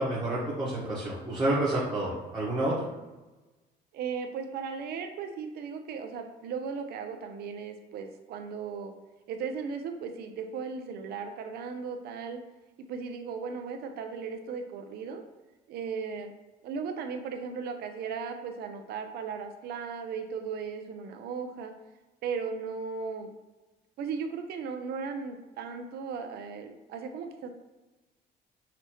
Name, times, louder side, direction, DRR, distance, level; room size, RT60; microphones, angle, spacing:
voice 1, 0.0-2.9, right 1 dB, 20° right, -8 dB, 1.3 m, -29 dB
voice 2, 3.9-8.9 9.3-12.4 12.9-15.2 15.7-16.3 16.6-21.7 22.2-23.3 24.0-27.5, right 5 dB, 70° right, 6 dB, 0.6 m, -36 dB
5.9 x 2.8 x 3.0 m, 1.1 s
cardioid pair, 110°, 17 cm